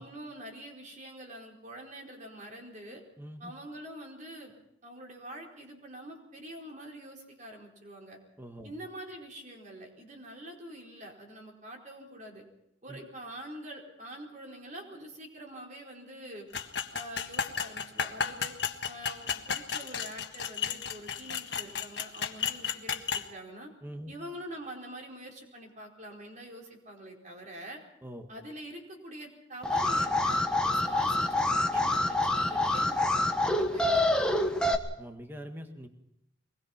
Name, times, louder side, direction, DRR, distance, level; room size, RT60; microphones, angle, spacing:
voice 1, 0.0-3.0 3.4-4.5 4.8-8.2 8.6-12.4 12.8-16.5 16.9-18.5 18.9-23.7 24.1-27.8 28.3-34.7, right 1 dB, 40° right, 0 dB, 4.6 m, -45 dB
voice 2, 3.2-3.5 8.4-8.7 12.9-13.0 23.8-24.1 28.0-28.3 35.0-35.9, equal, 10° right, 5 dB, 1.7 m, -43 dB
sound 1, 16.5-23.3, left 7 dB, 60° left, 1.5 m, -33 dB
Alarm, 29.6-34.7, left 1 dB, 5° left, 1.2 m, -26 dB
24.0 x 20.5 x 5.9 m, 0.79 s
head